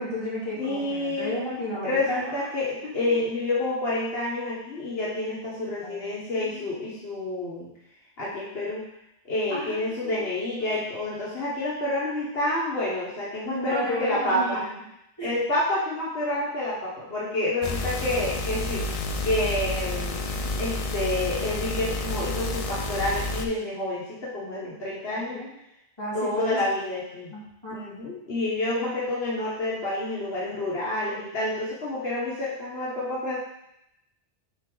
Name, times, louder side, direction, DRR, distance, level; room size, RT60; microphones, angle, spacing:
voice 1, 0.0-2.3 2.8-2.9 5.8-7.0 9.5-10.2 10.6-10.7 13.5-14.7 15.2-15.3 25.1-25.5 26.0-26.6 27.3-27.8, left 1 dB, 25° left, -9 dB, 2.5 m, -33 dB
voice 2, 0.6-1.4 1.8-7.7 8.2-8.8 9.2-14.6 15.2-18.8 19.2-20.2 20.6-25.4 26.1-27.3 27.7-33.4, left 1 dB, 70° left, -7 dB, 1.5 m, -28 dB
sound 1, 17.6-23.4, left 2 dB, 45° left, 0.5 m, -30 dB
8.1 x 3.7 x 3.8 m, 0.83 s
omnidirectional pair, 1.1 m